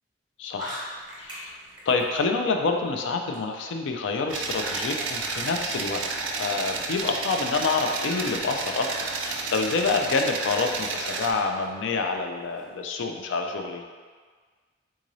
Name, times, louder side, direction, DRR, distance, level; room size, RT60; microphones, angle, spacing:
voice 1, 0.4-0.9 1.2-1.6 1.9-6.1 6.3-8.9 9.2-13.8, left 4 dB, 75° left, 4 dB, 0.3 m, -27 dB
sound 1, 0.6-12.8, equal, 25° right, 0.9 m, -48 dB
sound 2, 4.3-11.3, right 4 dB, 80° right, 0.4 m, -31 dB
3.6 x 2.6 x 3.0 m, 1.5 s
head